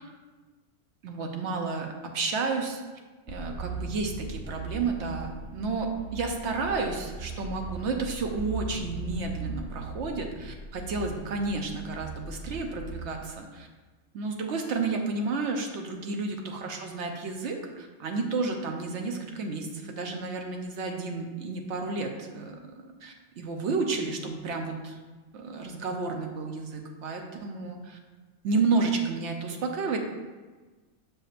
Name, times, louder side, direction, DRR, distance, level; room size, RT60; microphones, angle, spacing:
voice 1, 1.0-2.8 3.3-13.7 14.1-22.6 23.0-25.0 25.3-28.0 28.4-30.0, right 4 dB, 60° right, 3 dB, 0.9 m, -31 dB
sound 1, 3.3-13.1, right 3 dB, 35° right, 0.5 m, -39 dB
7.5 x 5.0 x 2.5 m, 1.3 s
omnidirectional pair, 1.5 m